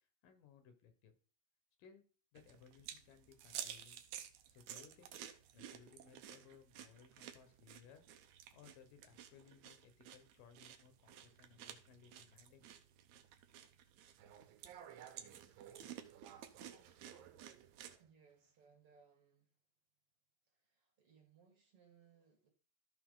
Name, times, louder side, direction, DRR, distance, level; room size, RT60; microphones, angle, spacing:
voice 1, 0.2-1.1 1.8-2.1 2.3-4.0 4.5-8.1 8.5-12.7, left 7 dB, 75° left, 8 dB, 3.0 m, -63 dB
sound 1, 2.4-18.0, right 10 dB, 70° right, 1.9 m, -53 dB
sound 2, 14.2-18.1, right 10 dB, 90° right, 2.6 m, -58 dB
voice 2, 18.0-19.5 20.4-22.5, right 6 dB, 45° right, 2 dB, 2.5 m, -68 dB
14.0 x 5.7 x 3.9 m, 0.38 s
omnidirectional pair, 4.0 m